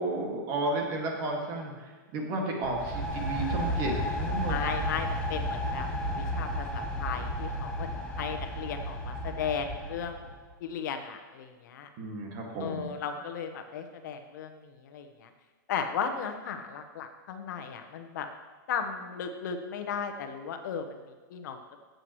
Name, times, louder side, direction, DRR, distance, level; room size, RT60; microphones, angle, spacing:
voice 1, 0.0-4.6 12.0-12.9, right 2 dB, 35° right, 0 dB, 2.0 m, -33 dB
sound 1, 2.6-10.4, equal, 10° left, 1.1 m, -33 dB
voice 2, 4.5-5.9 6.2-10.3 10.6-11.9 12.6-15.3 15.7-18.3 18.7-21.0 21.3-21.6, left 7 dB, 65° left, 6 dB, 1.0 m, -36 dB
14.0 x 7.9 x 3.1 m, 1.4 s
supercardioid pair, 155°, 11 cm